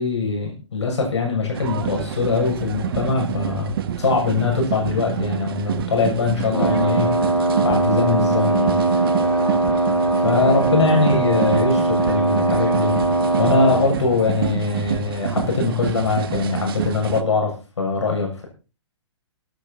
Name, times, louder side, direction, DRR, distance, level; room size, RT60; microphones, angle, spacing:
voice 1, 0.0-7.1 7.6-8.8 10.2-13.0 13.4-18.5, left 4 dB, 65° left, 1 dB, 7.5 m, -22 dB
sound 1, 1.5-17.2, right 9 dB, 50° right, 1.5 m, -28 dB
Wind instrument woodwind instrument, 6.5-13.9, right 2 dB, 90° left, 5.5 m, -20 dB
18.5 x 10.5 x 4.3 m, 0.33 s
figure-of-eight pair, 120°, 16 cm